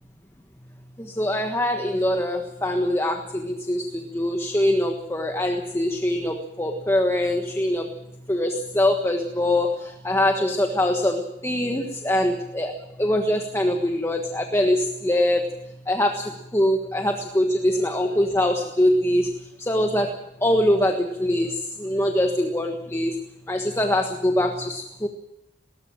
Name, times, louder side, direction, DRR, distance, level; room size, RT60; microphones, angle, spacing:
voice 1, 1.0-7.9 8.3-15.5 15.8-23.2 23.5-25.1, left 1 dB, 15° left, 4 dB, 1.4 m, -23 dB
20.5 x 18.0 x 7.4 m, 0.92 s
head